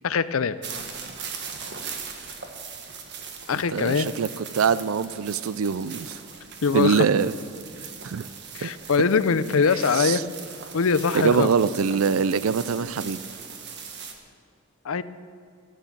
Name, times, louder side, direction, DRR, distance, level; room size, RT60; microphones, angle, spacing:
voice 1, 0.0-0.6 3.5-4.1 6.6-7.1 8.5-10.2 10.7-11.5 14.8-15.0, left 5 dB, 80° left, 15 dB, 0.6 m, -22 dB
sound 1, 0.6-14.1, right 6 dB, 55° right, 1.5 m, -40 dB
voice 2, 3.7-6.2 6.7-7.3 8.0-8.3 8.6-8.7 9.9-10.2 11.1-13.2, right 6 dB, 80° right, 16 dB, 0.4 m, -23 dB
12.5 x 11.5 x 7.4 m, 2.3 s
head